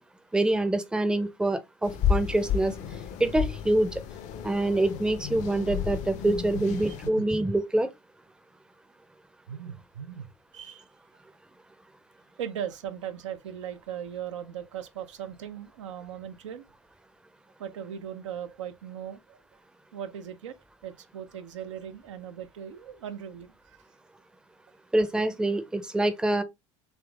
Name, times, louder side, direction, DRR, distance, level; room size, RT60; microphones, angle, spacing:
voice 1, 0.3-2.8 3.2-4.0 4.4-7.9 24.9-26.4, right 1 dB, 5° right, 0.5 m, -25 dB
sound 1, 1.8-7.1, left 8 dB, 50° left, 0.5 m, -32 dB
voice 2, 6.5-7.3 9.5-10.3 10.5-10.8 12.4-16.6 17.6-19.4 19.9-20.6 20.8-23.8, right 9 dB, 80° right, 0.4 m, -38 dB
3.4 x 3.0 x 2.3 m
hypercardioid pair, 70°, 16 cm